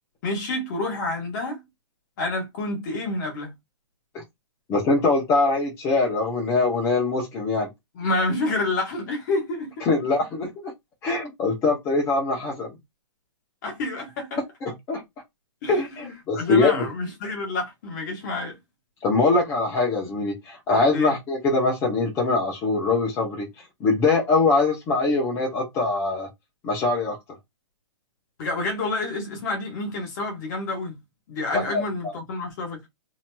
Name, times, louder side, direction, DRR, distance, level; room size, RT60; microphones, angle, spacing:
voice 1, 0.2-1.6 2.2-3.5 7.9-10.0 13.6-14.4 15.6-18.6 20.9-21.1 28.4-31.0 31.3-32.8, left 2 dB, 40° left, 1.3 m, -28 dB
voice 2, 4.7-7.7 9.8-10.7 11.0-12.7 14.6-15.0 15.7-16.8 19.0-26.3 26.6-27.2 31.5-32.1, left 3 dB, 20° left, 0.8 m, -23 dB
2.8 x 2.8 x 2.3 m
hypercardioid pair, 150°, 15 cm